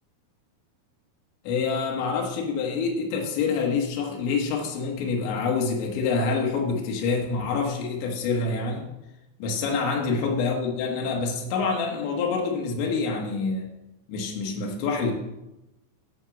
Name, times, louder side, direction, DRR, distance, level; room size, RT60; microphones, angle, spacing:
voice 1, 1.5-8.9 9.4-13.7 14.1-15.1, left 4 dB, 80° left, 0 dB, 3.6 m, -26 dB
10.5 x 3.7 x 7.0 m, 0.94 s
omnidirectional pair, 5.2 m